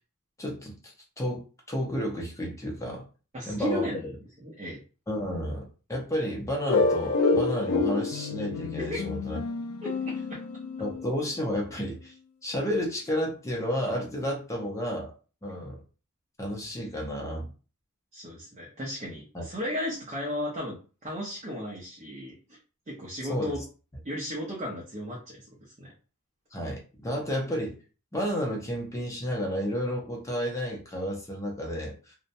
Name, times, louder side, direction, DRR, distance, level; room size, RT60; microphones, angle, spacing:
voice 1, 0.4-3.0 3.5-3.9 5.1-9.4 10.8-12.1 12.4-15.1 15.4-15.8 16.4-17.5 19.3-19.5 23.3-23.5 26.5-27.8 28.1-32.2, equal, 15° left, -1 dB, 0.5 m, -31 dB
voice 2, 3.3-4.1 4.4-4.8 8.8-9.1 9.8-10.4 18.1-22.6 22.9-23.6 24.0-25.5 25.8-25.9, equal, 30° right, -5 dB, 0.6 m, -35 dB
sound 1, 6.7-11.3, left 4 dB, 70° left, 0.3 m, -28 dB
2.7 x 2.1 x 2.6 m, 0.35 s
head